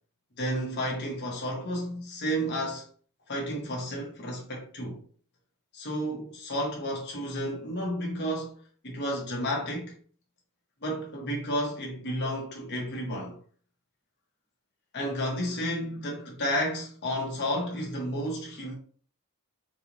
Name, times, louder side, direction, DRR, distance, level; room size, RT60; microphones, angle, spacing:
voice 1, 0.4-2.9 3.3-5.0 5.7-8.6 8.8-9.9 10.8-13.4 14.9-18.7, equal, 50° left, 1.0 m, -32 dB
3.9 x 3.0 x 2.6 m
head